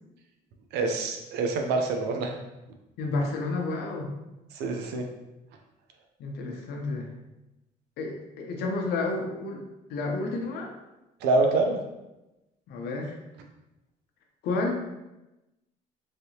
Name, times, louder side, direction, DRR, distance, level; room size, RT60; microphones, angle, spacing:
voice 1, 0.7-2.4 4.5-5.0 11.2-11.8, right 3 dB, 80° right, 3 dB, 0.5 m, -26 dB
voice 2, 3.0-4.1 6.2-7.1 8.0-9.6 9.9-10.8 12.7-13.2 14.4-14.7, left 3 dB, 75° left, 1 dB, 0.7 m, -30 dB
3.3 x 2.8 x 2.7 m, 0.98 s
cardioid pair, 110°, 17 cm